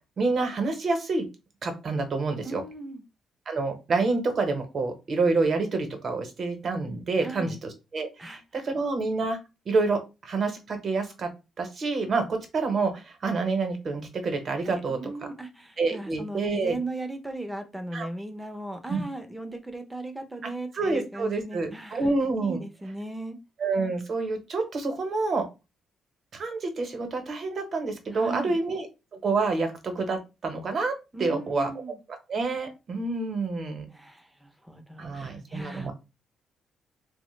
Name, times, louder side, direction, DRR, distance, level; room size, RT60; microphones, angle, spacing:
voice 1, 0.2-1.3 1.6-2.6 3.5-7.5 7.9-9.4 9.7-11.3 11.6-15.0 15.8-16.8 17.9-18.1 18.9-19.0 20.4-22.6 23.6-25.4 26.3-28.9 29.2-31.7 32.3-33.9 35.0-35.9, right 3 dB, 50° right, 6 dB, 0.8 m, -28 dB
voice 2, 2.4-3.0 7.2-7.6 8.2-8.4 14.6-22.1 22.4-23.4 28.1-28.6 31.1-32.0 33.9-35.9, right 2 dB, 10° right, 6 dB, 0.6 m, -37 dB
3.1 x 2.1 x 3.1 m, 0.27 s
cardioid pair, 90°, 0 cm